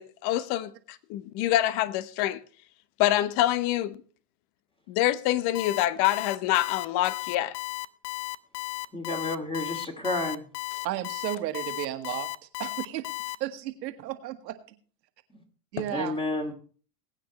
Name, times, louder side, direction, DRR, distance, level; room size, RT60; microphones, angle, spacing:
voice 1, 0.0-2.4 3.0-4.0 4.9-7.6, left 14 dB, 50° left, 1.0 m, -26 dB
Alarm, 5.5-13.3, left 18 dB, 80° left, 0.9 m, -34 dB
voice 2, 8.9-10.5 15.3-15.4 15.9-16.5, left 2 dB, 10° left, 2.4 m, -31 dB
voice 3, 10.8-12.3 12.6-13.1 13.4-14.6 15.7-16.2, right 14 dB, 85° right, 1.9 m, -33 dB
21.0 x 9.1 x 3.1 m
supercardioid pair, 120°, 49 cm